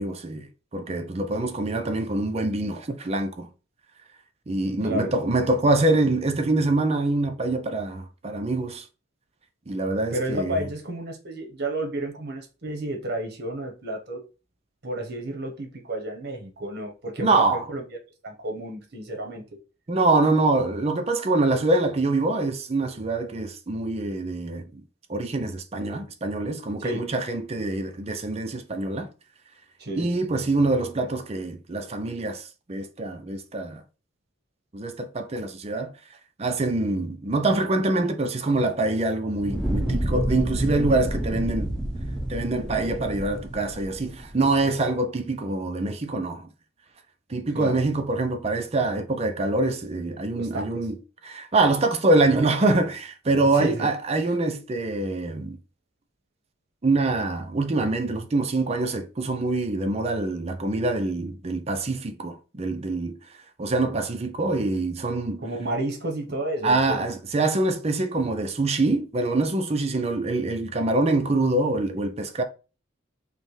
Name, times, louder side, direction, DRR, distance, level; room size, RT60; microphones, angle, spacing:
voice 1, 0.0-3.5 4.5-8.9 9.7-10.7 17.2-17.7 19.9-24.8 25.1-29.1 29.9-33.8 34.7-35.9 36.4-41.7 42.3-46.5 47.3-51.0 51.2-55.6 56.8-63.2 63.6-65.4 66.6-72.4, right 2 dB, 30° right, 0.5 m, -25 dB
voice 2, 10.1-14.2 14.8-17.8 18.2-19.6 26.8-27.1 29.8-30.1 47.5-47.8 50.3-50.8 53.5-53.9 65.4-67.0, right 1 dB, 55° right, 1.0 m, -31 dB
Fire, 39.3-44.5, right 1 dB, 5° left, 1.0 m, -29 dB
5.5 x 2.1 x 3.2 m
head